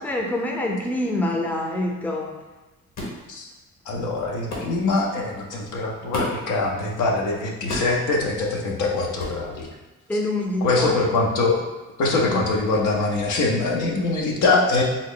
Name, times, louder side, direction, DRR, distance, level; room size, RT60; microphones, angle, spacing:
voice 1, 0.0-2.4 10.1-11.0 12.2-12.5, left 1 dB, 5° left, 1 dB, 0.5 m, -26 dB
sound 1, 3.0-3.2 4.5-4.7 6.1-6.5 7.7-8.0 9.2-9.4, left 1 dB, 60° left, 1.1 m, -30 dB
voice 2, 3.9-9.7 10.6-11.6 12.0-14.8, left 3 dB, 80° left, -1 dB, 0.7 m, -23 dB
3.7 x 2.0 x 3.7 m, 1.1 s
cardioid pair, 90°, 30 cm